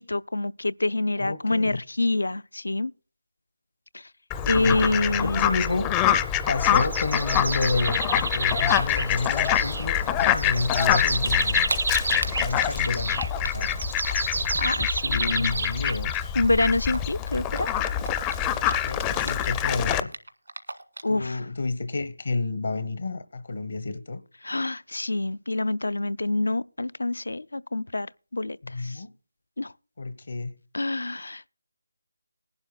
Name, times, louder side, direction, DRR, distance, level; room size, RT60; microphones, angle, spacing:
voice 1, 0.0-2.9 3.9-4.0 4.5-5.5 14.6-15.5 16.4-17.7 21.0-21.4 24.4-29.0 29.6-29.7 30.7-31.5, left 2 dB, 85° left, 0.5 m, -26 dB
voice 2, 1.2-1.8 4.4-4.9 5.2-5.9 6.5-11.7 12.1-13.8 14.2-14.5 15.0-16.1 18.8-20.1 21.1-24.2 28.6-29.1 30.0-30.5, left 3 dB, 65° left, 1.1 m, -30 dB
Fowl, 4.3-20.0, left 10 dB, 15° left, 0.4 m, -25 dB
sound 1, 6.6-16.4, right 3 dB, 60° right, 0.4 m, -31 dB
Typing, 9.6-11.0 11.3-15.7 16.0-19.6 19.9-21.2, right 2 dB, 90° right, 1.5 m, -37 dB
20.0 x 11.0 x 2.3 m
figure-of-eight pair, 165°, 0 cm